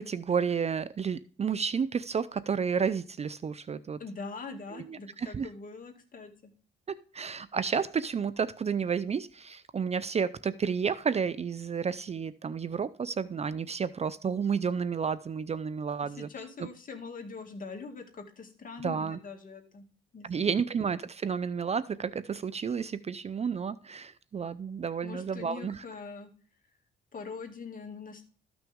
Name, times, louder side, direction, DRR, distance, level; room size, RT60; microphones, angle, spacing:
voice 1, 0.0-4.0 4.7-5.5 6.9-16.3 16.6-16.7 18.8-19.2 20.2-25.8, right 6 dB, 35° right, 0.5 m, -31 dB
voice 2, 4.0-6.5 16.2-19.9 20.1-20.7 25.0-26.3 27.1-28.3, left 4 dB, 45° left, 2.2 m, -43 dB
13.5 x 6.1 x 3.6 m
cardioid pair, 90°, 20 cm